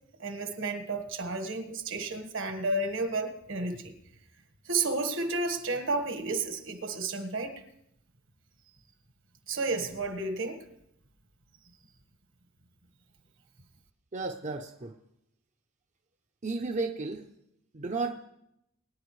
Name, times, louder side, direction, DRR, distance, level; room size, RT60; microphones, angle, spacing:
voice 1, 0.2-3.9 4.6-7.6 9.5-10.6, right 3 dB, 65° right, 7 dB, 1.6 m, -32 dB
voice 2, 14.1-14.9 16.4-17.2 17.7-18.3, right 3 dB, 35° right, 4 dB, 0.7 m, -33 dB
22.5 x 10.0 x 3.2 m, 0.79 s
head